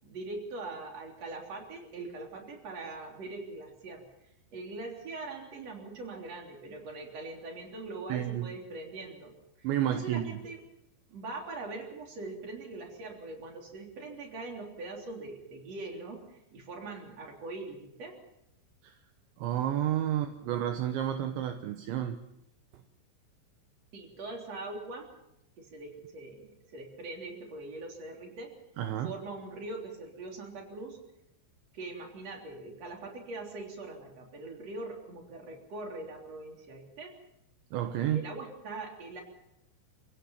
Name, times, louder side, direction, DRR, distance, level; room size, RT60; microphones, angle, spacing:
voice 1, 0.0-4.0 4.5-9.3 9.6-10.6 11.1-18.2 23.9-25.1 25.6-28.5 29.0-31.0 31.7-37.1 37.7-39.2, right 2 dB, 35° right, 1 dB, 4.1 m, -42 dB
voice 2, 8.1-8.5 9.6-10.4 18.8-19.0 19.4-22.2 28.8-29.1 37.7-38.2, right 11 dB, 75° right, 7 dB, 3.1 m, -31 dB
28.5 x 16.5 x 5.8 m, 0.84 s
omnidirectional pair, 5.7 m